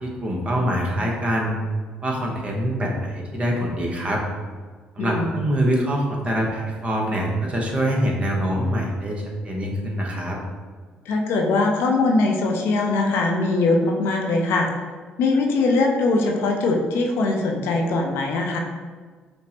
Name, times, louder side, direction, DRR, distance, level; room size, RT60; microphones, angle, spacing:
voice 1, 0.0-1.6 2.0-4.2 4.9-10.4, equal, 30° right, -1 dB, 0.9 m, -24 dB
voice 2, 5.0-5.3 11.1-14.7 15.2-18.6, left 3 dB, 70° left, 2 dB, 0.5 m, -21 dB
5.1 x 2.0 x 2.9 m, 1.5 s
hypercardioid pair, 60°, 4 cm